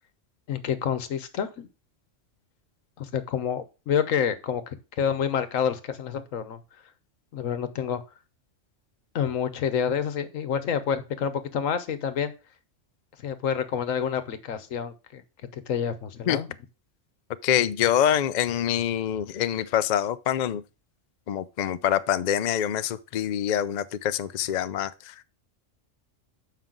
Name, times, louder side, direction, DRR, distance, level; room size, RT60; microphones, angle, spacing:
voice 1, 0.5-1.7 3.0-4.6 5.0-6.6 7.3-8.0 9.1-12.3 13.2-15.2 15.7-16.5, left 8 dB, 85° left, 1.3 m, -28 dB
voice 2, 17.4-20.6 21.3-25.1, left 10 dB, 60° left, 0.4 m, -25 dB
7.4 x 5.5 x 3.8 m
omnidirectional pair, 1.3 m